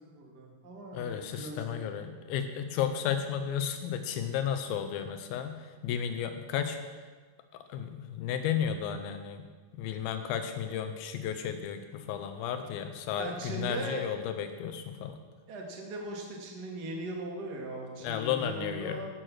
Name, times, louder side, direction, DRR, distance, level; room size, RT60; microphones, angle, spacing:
voice 1, 0.1-1.9 13.2-14.1 15.5-19.1, right 1 dB, 35° right, -1 dB, 1.8 m, -39 dB
voice 2, 0.9-7.1 7.7-9.5 9.7-15.2 18.0-19.0, left 8 dB, 90° left, 7 dB, 2.6 m, -33 dB
17.5 x 6.4 x 6.1 m, 1.4 s
omnidirectional pair, 4.3 m